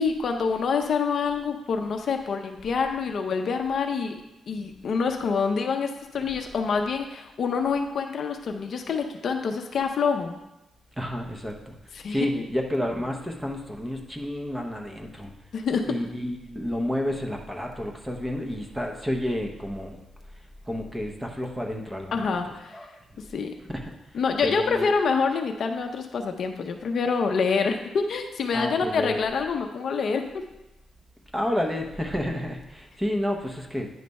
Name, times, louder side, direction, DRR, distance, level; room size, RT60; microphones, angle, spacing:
voice 1, 0.0-4.2 4.5-10.3 11.9-12.4 15.5-15.8 22.1-22.8 23.2-23.5 24.1-30.4, left 5 dB, 50° left, 5 dB, 0.5 m, -26 dB
voice 2, 11.0-11.7 12.1-15.3 15.8-20.0 20.7-22.3 22.7-22.9 23.7-23.9 24.4-24.9 28.5-29.1 31.3-33.9, left 1 dB, 5° right, 1 dB, 0.7 m, -30 dB
9.3 x 3.3 x 5.2 m, 0.94 s
wide cardioid pair, 170°, 0 cm